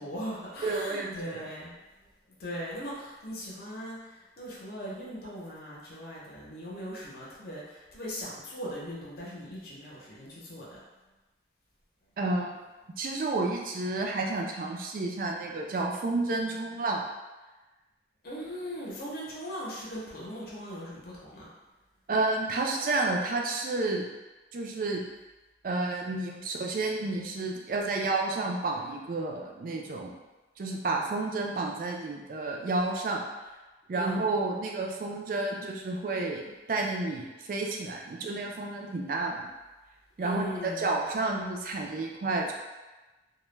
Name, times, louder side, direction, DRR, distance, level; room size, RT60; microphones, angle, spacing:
voice 1, 0.0-1.7 2.4-10.8 18.2-21.5 33.9-34.2 40.2-40.9, equal, 55° left, -6 dB, 0.6 m, -39 dB
voice 2, 0.6-1.4 12.2-12.6 13.0-17.0 22.1-24.0 24.5-25.0 25.6-30.2 30.6-33.2 33.9-39.5 40.2-42.5, right 2 dB, 50° right, 0 dB, 0.3 m, -30 dB
2.1 x 2.1 x 3.1 m, 1.1 s
head